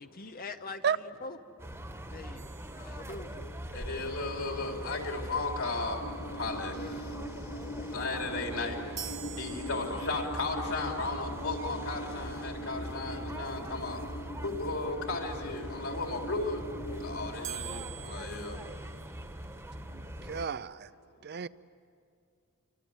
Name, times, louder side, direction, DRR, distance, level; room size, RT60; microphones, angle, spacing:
voice 1, 0.0-1.4 2.1-2.4 2.7-3.5 19.8-20.5, left 3 dB, 40° left, 8 dB, 0.7 m, -44 dB
sound 1, 1.6-20.5, right 1 dB, 10° right, 1.3 m, -42 dB
sound 2, 2.4-3.7 9.0-10.4 17.4-19.6, right 11 dB, 35° right, 1.4 m, -45 dB
voice 2, 3.7-6.0 6.4-6.7 7.9-8.8 9.4-14.0 14.4-16.6 16.9-18.6, left 3 dB, 70° left, 1 dB, 4.2 m, -35 dB
sound 3, 6.0-17.4, equal, 85° left, 5.4 m, -42 dB
voice 3, 19.9-20.9 21.2-21.5, right 7 dB, 50° right, 16 dB, 0.6 m, -32 dB
28.5 x 24.5 x 8.1 m, 2.4 s
head